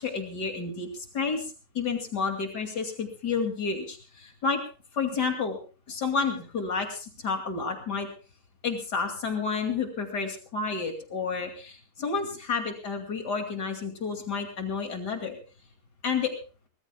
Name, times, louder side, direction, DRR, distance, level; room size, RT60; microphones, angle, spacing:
voice 1, 0.0-4.6 4.9-5.6 5.9-8.1 8.6-15.4 16.0-16.3, left 5 dB, 90° left, 4 dB, 3.1 m, -30 dB
24.5 x 19.0 x 2.3 m, 0.36 s
omnidirectional pair, 1.7 m